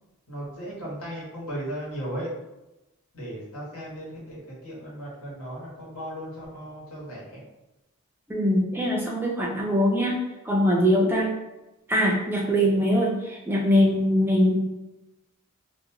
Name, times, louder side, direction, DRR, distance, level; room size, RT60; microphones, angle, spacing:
voice 1, 0.3-2.3 3.1-7.4, right 1 dB, 80° left, -6 dB, 1.2 m, -36 dB
voice 2, 8.3-11.3 11.9-14.5, equal, 10° right, -2 dB, 0.4 m, -22 dB
2.5 x 2.2 x 2.8 m, 0.97 s
head